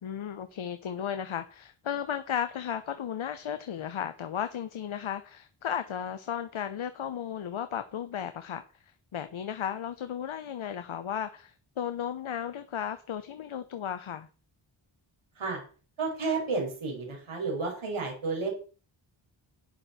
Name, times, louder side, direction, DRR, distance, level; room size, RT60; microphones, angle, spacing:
voice 1, 0.0-14.3, left 9 dB, 75° left, 1.0 m, -35 dB
voice 2, 16.0-18.5, right 4 dB, 80° right, 5.6 m, -31 dB
12.5 x 10.0 x 4.3 m
cardioid pair, 60°, 49 cm